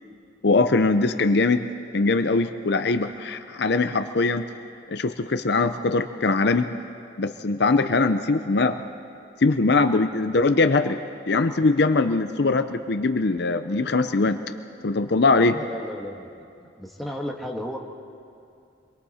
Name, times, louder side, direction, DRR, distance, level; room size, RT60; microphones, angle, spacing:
voice 1, 0.4-1.7 1.9-4.4 4.9-6.7 7.2-8.8 9.4-11.0 11.3-14.4 14.8-15.6, left 3 dB, 60° left, 9 dB, 0.6 m, -21 dB
voice 2, 15.5-16.3 16.6-17.8, equal, ahead, -1 dB, 1.7 m, -33 dB
27.0 x 22.5 x 4.3 m, 2.6 s
head